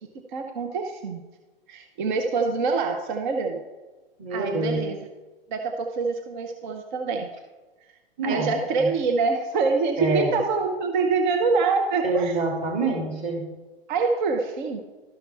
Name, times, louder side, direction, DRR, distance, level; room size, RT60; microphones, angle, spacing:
voice 1, 0.3-1.2 1.7-3.6 4.3-5.0 5.5-7.3 8.2-12.4 13.9-14.8, right 4 dB, 50° right, 4 dB, 1.0 m, -25 dB
voice 2, 4.2-4.8 8.2-8.9 10.0-10.3 12.0-13.5, right 3 dB, 25° right, -1 dB, 2.9 m, -26 dB
13.0 x 5.7 x 3.4 m, 1.2 s
hypercardioid pair, 125°, 30 cm